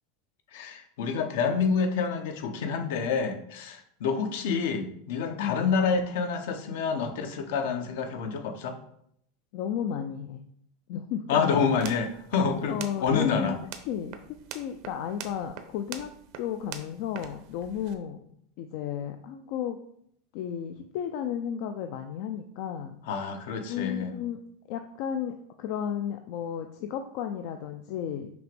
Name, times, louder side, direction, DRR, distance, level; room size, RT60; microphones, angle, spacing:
voice 1, 0.5-8.8 11.3-13.6 23.1-24.2, left 5 dB, 70° left, 6 dB, 0.9 m, -28 dB
voice 2, 9.5-10.4 10.9-11.4 12.7-13.5 13.9-14.2 14.5-16.1 16.4-18.2 18.6-19.8 20.3-22.9 23.7-24.4 24.7-28.3, left 9 dB, 55° left, 6 dB, 0.4 m, -33 dB
sound 1, 11.6-17.9, right 9 dB, 55° right, 0.7 m, -45 dB
6.1 x 3.0 x 5.2 m, 0.69 s
supercardioid pair, 150°, 0 cm